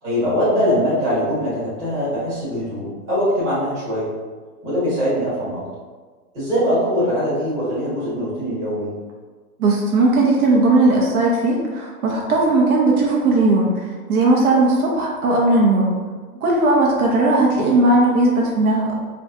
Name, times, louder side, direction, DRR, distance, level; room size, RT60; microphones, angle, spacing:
voice 1, 0.0-4.1 4.6-5.6 6.3-8.9, equal, 15° right, -12 dB, 1.1 m, -22 dB
voice 2, 9.6-16.0 16.4-18.9, right 2 dB, 65° right, -3 dB, 0.7 m, -17 dB
3.4 x 2.3 x 2.7 m, 1.4 s
hypercardioid pair, 170°, 46 cm